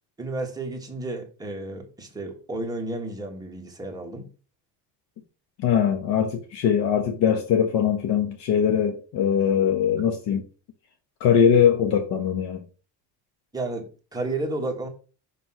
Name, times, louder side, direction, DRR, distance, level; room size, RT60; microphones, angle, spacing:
voice 1, 0.2-4.3 13.5-14.9, right 2 dB, 10° right, 1.2 m, -32 dB
voice 2, 5.6-10.4 11.2-12.6, left 8 dB, 60° left, 1.0 m, -21 dB
5.9 x 3.1 x 5.6 m
cardioid pair, 160°, 44 cm